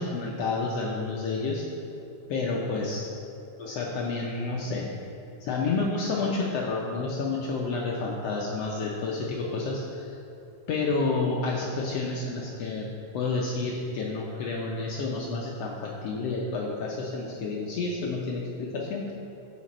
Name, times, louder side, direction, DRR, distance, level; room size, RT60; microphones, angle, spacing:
voice 1, 0.0-1.6 2.3-3.1 3.6-4.9 5.4-10.2 10.7-12.9 13.1-19.1, left 3 dB, 85° left, -2 dB, 1.4 m, -30 dB
12.5 x 5.1 x 4.2 m, 2.7 s
omnidirectional pair, 3.7 m